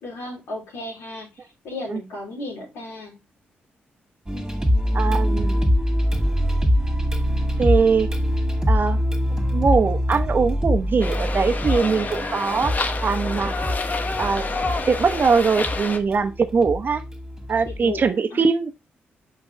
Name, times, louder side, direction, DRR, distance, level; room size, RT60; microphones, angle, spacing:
voice 1, 0.0-3.2 4.3-5.2 17.6-18.0 18.3-18.5, left 2 dB, 80° left, 3.3 m, -35 dB
sound 1, 4.3-18.1, equal, 15° right, 2.5 m, -24 dB
voice 2, 4.9-5.7 7.6-8.1 8.7-9.0 9.5-12.7 13.0-13.5 14.2-14.6 14.9-17.0 17.5-18.7, right 5 dB, 50° right, 0.9 m, -21 dB
sound 2, 11.0-16.0, left 3 dB, 40° left, 1.1 m, -29 dB
6.3 x 5.2 x 3.2 m
supercardioid pair, 55°, 4 cm